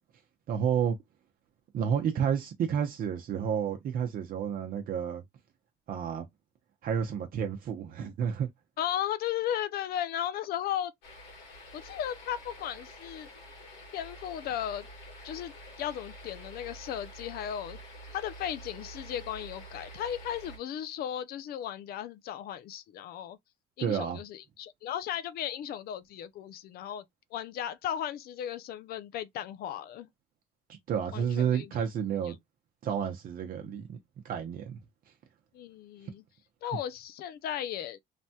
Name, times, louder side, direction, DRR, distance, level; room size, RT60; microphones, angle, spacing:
voice 1, 0.5-1.0 1.7-5.2 5.9-6.2 6.8-8.5 23.8-24.2 30.9-32.4 32.8-34.0 34.2-34.8, right 8 dB, 55° right, 0.7 m, -30 dB
voice 2, 8.8-10.9 11.7-13.3 13.9-14.9 15.2-15.5 15.8-17.8 18.1-23.4 23.8-27.0 27.3-30.1 31.1-31.7 32.2-32.3 35.5-36.2 36.6-38.0, left 10 dB, 65° left, 0.5 m, -35 dB
sound 1, 11.0-20.6, equal, 90° left, 1.6 m, -48 dB
3.3 x 2.2 x 2.7 m
cardioid pair, 110°, 17 cm